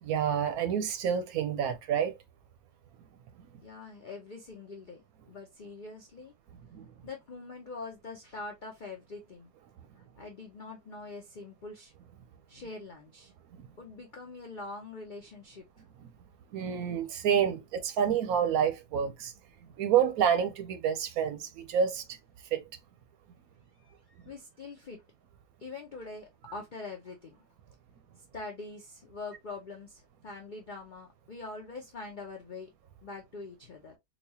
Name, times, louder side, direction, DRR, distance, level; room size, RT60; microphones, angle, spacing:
voice 1, 0.0-2.1 6.7-6.9 16.5-19.3 19.8-22.0 22.5-22.6, right 8 dB, 70° right, 1.0 m, -28 dB
voice 2, 3.6-5.0 5.3-6.3 7.0-9.5 10.2-11.9 12.5-13.3 13.8-15.6 23.8-25.0 25.6-27.4 28.3-32.7 33.0-34.0, left 3 dB, 90° left, 0.4 m, -44 dB
4.1 x 2.3 x 2.7 m
omnidirectional pair, 1.8 m